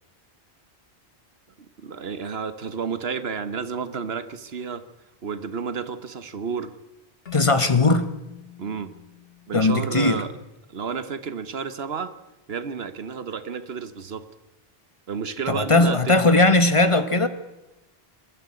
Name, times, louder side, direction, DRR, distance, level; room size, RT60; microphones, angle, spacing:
voice 1, 1.6-4.8 5.2-6.7 8.6-8.9 9.5-10.3 10.7-12.1 12.5-14.2 15.1-16.2, right 6 dB, 75° right, 12 dB, 1.3 m, -31 dB
Keyboard (musical), 7.3-10.5, left 14 dB, 70° left, 1.8 m, -46 dB
voice 2, 7.3-8.1 9.5-10.2 15.5-17.3, left 2 dB, 30° left, 11 dB, 1.1 m, -18 dB
21.5 x 13.0 x 9.7 m, 0.99 s
omnidirectional pair, 1.1 m